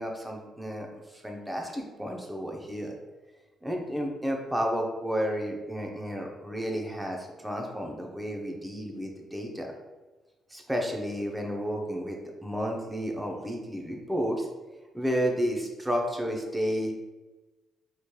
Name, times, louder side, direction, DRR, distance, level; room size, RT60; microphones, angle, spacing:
voice 1, 0.0-3.0 3.6-9.7 10.5-14.5 14.9-16.9, equal, 5° right, 0 dB, 0.6 m, -32 dB
4.1 x 3.1 x 2.2 m, 1.2 s
cardioid pair, 90°, 0 cm